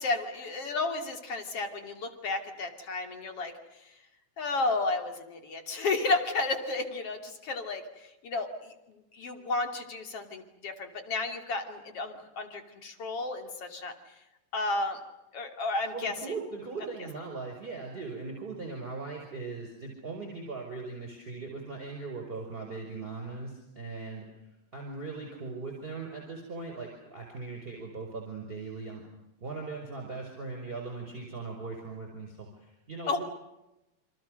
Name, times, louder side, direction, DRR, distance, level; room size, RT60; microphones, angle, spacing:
voice 1, 0.0-3.9 4.4-13.9 14.5-15.0 15.3-16.1 33.1-33.2, left 3 dB, 40° left, 6 dB, 3.1 m, -32 dB
voice 2, 15.9-29.0 29.4-33.2, right 4 dB, 10° right, 2 dB, 5.2 m, -39 dB
29.0 x 26.0 x 6.6 m, 0.95 s
omnidirectional pair, 5.0 m